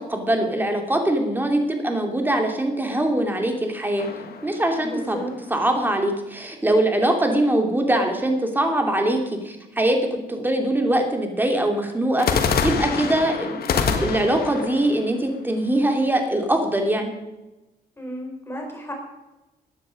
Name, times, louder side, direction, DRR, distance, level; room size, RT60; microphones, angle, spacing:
voice 1, 0.1-4.1 4.4-5.2 5.5-9.2 9.4-17.1, right 1 dB, 10° right, 3 dB, 2.7 m, -22 dB
sound 1, 4.0-5.4 12.2-16.1, left 6 dB, 60° left, 1.6 m, -26 dB
voice 2, 4.8-5.3 18.0-18.9, equal, 15° left, 1 dB, 4.4 m, -33 dB
15.0 x 9.8 x 5.2 m, 1.0 s
cardioid pair, 115°, 17 cm